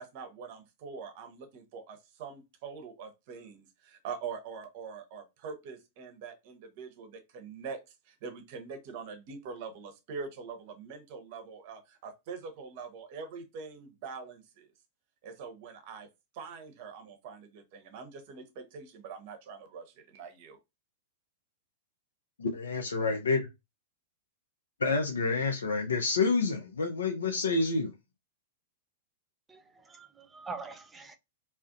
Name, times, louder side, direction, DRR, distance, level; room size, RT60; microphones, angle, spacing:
voice 1, 0.0-7.8 8.1-14.7 15.2-16.1 16.3-20.6, right 5 dB, 50° right, 0.7 m, -44 dB
voice 2, 22.4-23.4 24.8-27.9, left 4 dB, 80° left, 0.4 m, -28 dB
voice 3, 29.5-31.2, right 4 dB, 15° right, 0.5 m, -44 dB
2.4 x 2.0 x 2.5 m
hypercardioid pair, 105°, 0 cm